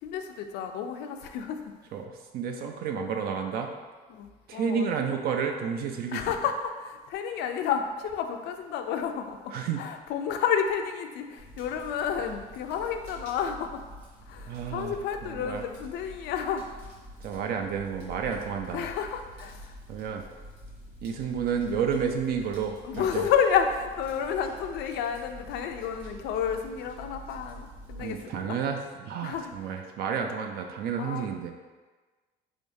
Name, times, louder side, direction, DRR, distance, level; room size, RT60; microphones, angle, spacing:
voice 1, 0.0-1.7 4.1-4.9 6.1-13.8 14.3-16.9 18.7-19.8 22.8-28.6 29.2-29.8 31.0-31.3, left 7 dB, 80° left, 6 dB, 0.4 m, -31 dB
voice 2, 1.9-3.7 4.5-6.2 9.5-9.8 14.5-14.9 15.3-15.6 17.2-18.8 19.9-20.2 21.0-23.2 28.0-31.5, right 6 dB, 65° right, 4 dB, 0.4 m, -31 dB
Fire, 11.4-28.2, equal, 80° right, 1.5 m, -47 dB
3.6 x 3.4 x 2.6 m, 1.3 s
cardioid pair, 110°, 17 cm